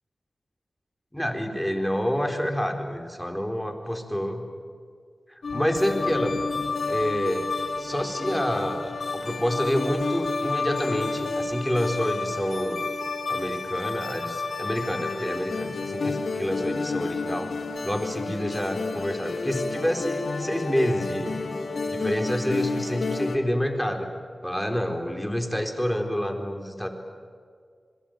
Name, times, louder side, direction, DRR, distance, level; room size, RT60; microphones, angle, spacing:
voice 1, 1.1-4.4 5.5-6.4 6.9-7.5 7.8-12.9 13.3-17.5 17.8-21.3 21.9-24.1 24.4-26.9, equal, 5° left, 4 dB, 4.1 m, -28 dB
sound 1, 5.4-23.4, left 3 dB, 85° left, 2.5 m, -30 dB
26.0 x 23.0 x 9.1 m, 2.1 s
wide cardioid pair, 60°, 0 cm